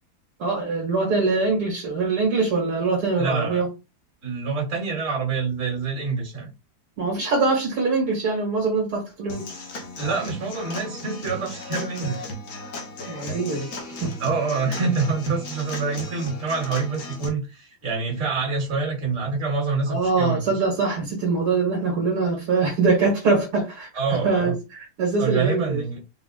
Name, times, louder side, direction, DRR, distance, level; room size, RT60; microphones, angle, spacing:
voice 1, 0.4-3.7 7.0-9.6 13.1-14.2 19.9-23.9 24.2-25.8, right 4 dB, 70° right, 2.0 m, -23 dB
voice 2, 3.2-3.6 4.2-6.5 10.0-12.3 14.2-20.6 24.0-24.5 25.2-26.0, right 4 dB, 50° right, 2.2 m, -26 dB
Human voice / Acoustic guitar / Drum, 9.3-17.3, left 1 dB, 60° left, 1.2 m, -35 dB
4.7 x 2.1 x 3.7 m
omnidirectional pair, 1.7 m